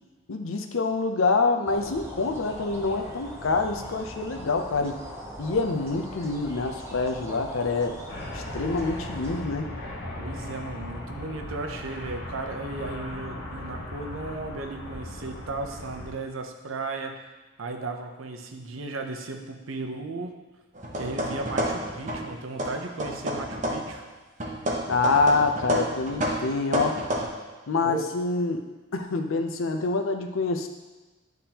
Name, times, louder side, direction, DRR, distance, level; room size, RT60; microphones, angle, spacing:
voice 1, 0.3-5.0 5.4-8.0 8.3-9.7 24.9-27.0 27.7-28.7 28.9-30.7, left 3 dB, 85° left, 5 dB, 0.6 m, -26 dB
sound 1, 1.7-9.4, equal, 15° right, 0.7 m, -40 dB
sound 2, 8.1-16.1, left 1 dB, 70° left, 1.2 m, -38 dB
voice 2, 10.1-17.2 17.6-20.3 21.0-24.1 27.8-28.1, right 3 dB, 85° right, 4 dB, 0.7 m, -35 dB
sound 3, 20.7-22.3 22.6-24.0 24.4-27.3, equal, 35° right, 0.9 m, -29 dB
9.9 x 3.6 x 2.9 m, 1.2 s
head